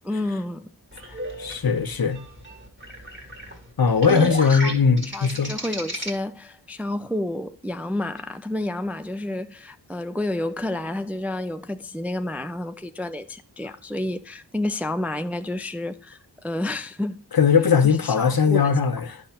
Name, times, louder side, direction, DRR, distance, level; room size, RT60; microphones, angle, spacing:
voice 1, 0.0-0.7 4.1-4.8 5.1-16.2 16.4-17.2 17.8-18.6, left 1 dB, 5° right, 0.4 m, -30 dB
sound 1, 0.9-6.1, right 1 dB, 25° right, 1.9 m, -33 dB
voice 2, 1.4-2.2 3.8-5.5 17.3-19.2, left 6 dB, 55° left, 0.9 m, -19 dB
10.0 x 6.3 x 2.9 m
wide cardioid pair, 60°, 42 cm